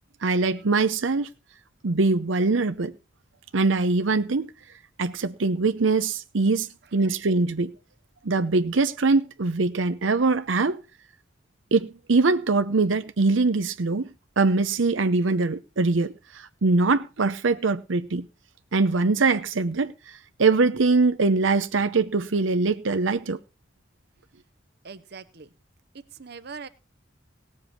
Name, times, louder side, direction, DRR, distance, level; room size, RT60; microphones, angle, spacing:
voice 1, 0.2-1.3 1.8-2.9 3.5-4.5 5.0-7.7 8.2-10.8 11.7-14.1 14.4-18.3 18.7-19.9 20.4-23.4, right 3 dB, 85° right, 0.7 m, -23 dB
voice 2, 24.8-25.5 25.9-26.7, right 5 dB, 55° right, 0.9 m, -41 dB
18.0 x 7.6 x 4.3 m
head